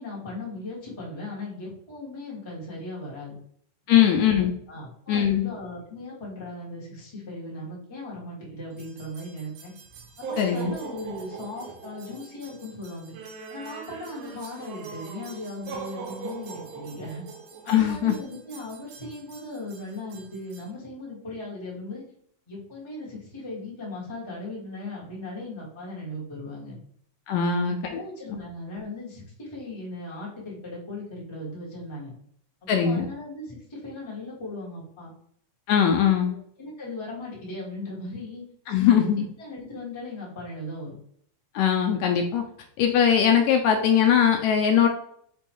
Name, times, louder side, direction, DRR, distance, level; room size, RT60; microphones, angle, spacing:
voice 1, 0.0-3.4 3.9-4.3 4.7-9.7 10.2-13.1 13.5-17.2 17.6-22.0 22.5-26.7 27.4-32.1 32.6-35.1 36.0-38.4 38.8-39.1 39.4-40.9, left 2 dB, 45° left, -5 dB, 0.3 m, -38 dB
voice 2, 3.9-4.5 5.1-5.5 10.4-10.7 17.7-18.1 27.3-27.8 32.7-33.1 35.7-36.4 38.7-39.2 41.5-42.4 42.8-44.9, left 8 dB, 80° left, 4 dB, 1.7 m, -20 dB
sound 1, 8.8-20.7, right 5 dB, 85° right, 2.3 m, -41 dB
5.3 x 2.2 x 4.4 m, 0.65 s
omnidirectional pair, 3.5 m